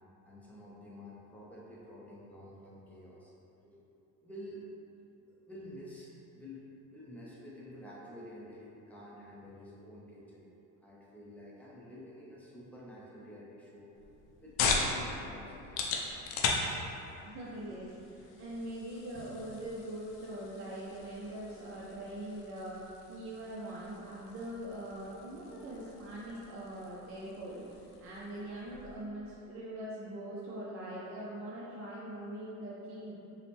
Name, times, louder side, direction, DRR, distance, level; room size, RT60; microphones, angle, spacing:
voice 1, 0.3-3.3 3.6-3.8 4.2-4.6 5.3-6.6 6.9-10.5 10.8-13.9 14.4-15.8 16.2-16.3, left 1 dB, 5° left, -6 dB, 0.6 m, -50 dB
sound 1, 13.9-29.1, left 4 dB, 70° left, 0.6 m, -39 dB
voice 2, 17.1-33.1, right 1 dB, 40° right, -7 dB, 0.6 m, -42 dB
5.5 x 2.1 x 3.4 m, 2.9 s
cardioid pair, 140°, 34 cm